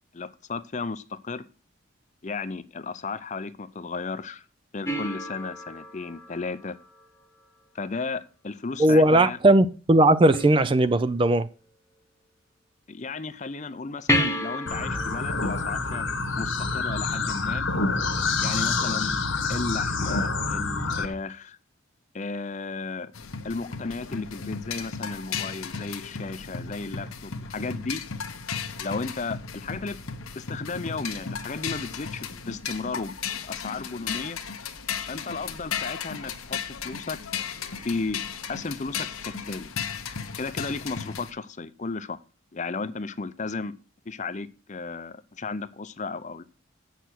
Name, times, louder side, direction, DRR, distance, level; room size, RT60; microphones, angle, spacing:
voice 1, 0.1-1.5 2.2-4.4 4.7-6.8 7.7-9.4 12.9-16.1 16.4-17.7 18.4-19.2 19.5-21.6 22.1-23.1 23.4-28.0 28.8-30.0 30.4-33.2 33.4-34.4 35.1-36.6 36.8-37.2 37.8-38.2 38.5-39.7 40.4-42.2 42.5-43.7 44.1-46.4, left 4 dB, 35° left, 0.5 m, -34 dB
sound 1, 4.8-7.5 10.3-11.3 14.1-17.0 20.1-20.2, left 1 dB, 15° left, 1.0 m, -32 dB
voice 2, 8.8-11.5, right 1 dB, 25° right, 0.4 m, -18 dB
sound 2, 14.7-21.1, left 3 dB, 65° left, 1.3 m, -27 dB
sound 3, 23.1-41.3, left 6 dB, 85° left, 1.1 m, -35 dB
8.1 x 6.5 x 5.9 m
head